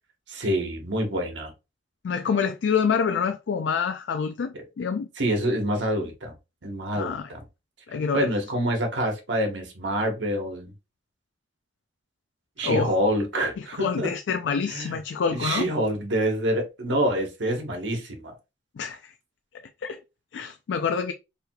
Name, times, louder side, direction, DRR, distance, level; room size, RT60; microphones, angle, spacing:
voice 1, 0.3-1.5 5.2-6.3 6.6-7.4 8.1-10.7 12.6-14.1 14.7-14.9 15.3-18.3, right 1 dB, 85° right, 1.1 m, -26 dB
voice 2, 2.0-5.1 7.0-7.3 7.9-8.3 12.6-12.9 13.6-15.7 18.8-19.1 19.8-20.0 20.3-21.1, left 6 dB, 85° left, 0.4 m, -27 dB
4.5 x 3.3 x 2.3 m
head